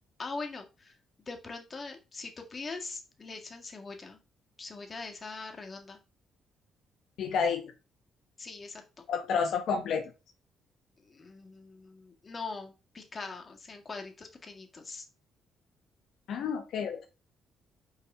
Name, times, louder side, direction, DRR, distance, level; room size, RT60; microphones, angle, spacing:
voice 1, 0.2-0.9 1.3-4.2 4.6-6.0 8.4-8.8 11.0-15.1, left 3 dB, 35° left, 4 dB, 1.7 m, -42 dB
voice 2, 7.2-7.7 9.1-10.1 16.3-17.0, left 6 dB, 75° left, 5 dB, 0.8 m, -30 dB
5.7 x 4.0 x 5.5 m, 0.30 s
cardioid pair, 90°, 0 cm